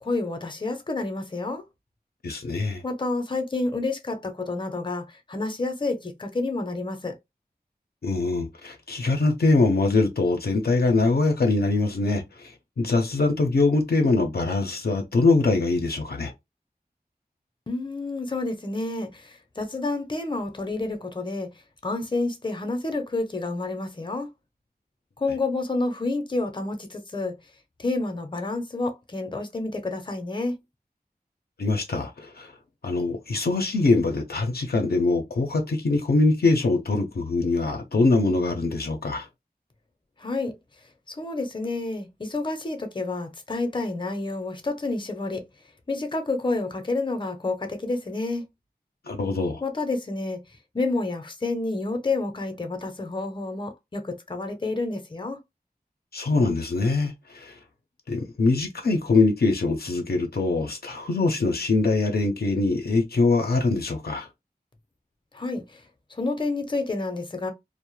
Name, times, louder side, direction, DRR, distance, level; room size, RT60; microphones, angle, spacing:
voice 1, 0.0-1.6 2.8-7.1 17.7-21.5 21.8-24.3 25.2-27.3 27.8-30.5 40.2-40.5 41.1-45.4 45.9-48.4 49.6-50.4 50.7-55.4 65.3-65.8 66.1-67.5, left 2 dB, 30° left, 0.6 m, -29 dB
voice 2, 2.2-2.8 8.0-16.3 31.6-32.5 32.8-39.3 49.1-49.6 56.1-57.6 58.1-64.3, left 3 dB, 80° left, 0.5 m, -23 dB
2.2 x 2.0 x 3.0 m
wide cardioid pair, 50°, 16 cm